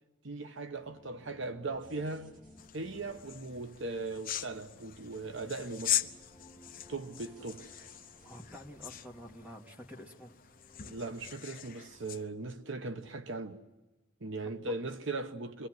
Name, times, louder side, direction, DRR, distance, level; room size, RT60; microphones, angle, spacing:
voice 1, 0.2-2.4 2.7-6.1 6.9-7.7 10.8-13.6 14.2-15.7, right 3 dB, 65° right, 1.1 m, -39 dB
sound 1, 0.6-11.1, left 1 dB, 15° left, 3.0 m, -61 dB
sound 2, 1.7-9.4, equal, 40° right, 3.8 m, -61 dB
sound 3, 2.6-12.2, left 11 dB, 45° left, 0.9 m, -40 dB
voice 2, 8.2-10.4 14.7-14.8, equal, 10° right, 2.4 m, -48 dB
26.5 x 23.0 x 7.9 m
head